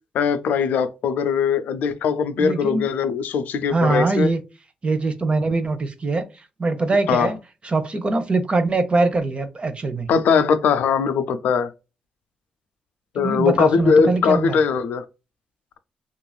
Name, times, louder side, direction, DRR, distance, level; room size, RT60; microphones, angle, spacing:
voice 1, 0.1-4.3 7.1-7.3 10.1-11.7 13.1-15.0, left 6 dB, 75° left, 0.4 m, -20 dB
voice 2, 2.4-2.9 3.7-4.4 4.8-7.4 7.6-10.1 13.2-14.6, right 3 dB, 40° right, 0.7 m, -22 dB
3.0 x 2.5 x 2.2 m
hypercardioid pair, 45°, 3 cm